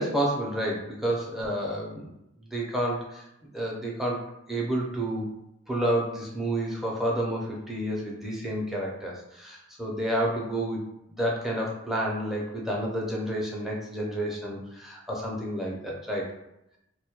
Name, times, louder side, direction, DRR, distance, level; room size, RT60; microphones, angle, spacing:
voice 1, 0.0-2.1 2.4-3.2 3.5-5.3 5.7-10.8 11.1-16.3, right 1 dB, ahead, -4 dB, 0.4 m, -30 dB
2.2 x 2.1 x 2.8 m, 0.85 s
head